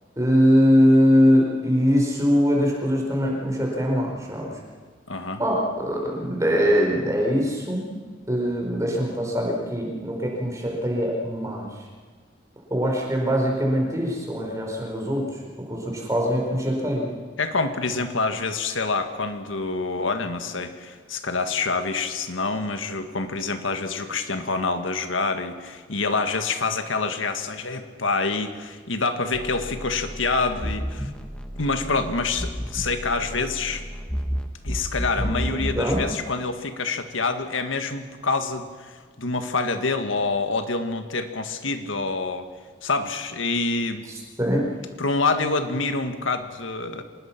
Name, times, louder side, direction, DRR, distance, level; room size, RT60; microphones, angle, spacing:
voice 1, 0.2-4.6 5.4-7.9 8.3-11.8 12.7-17.1 35.2-36.0 44.1-44.7, equal, 15° right, -1 dB, 4.5 m, -22 dB
voice 2, 5.1-5.4 17.4-31.1 31.6-33.8 34.6-42.5 42.8-44.0 45.0-47.0, left 3 dB, 85° left, 7 dB, 1.8 m, -26 dB
sound 1, 29.3-36.2, equal, 5° left, 1.3 m, -32 dB
25.5 x 20.0 x 6.0 m, 1.5 s
head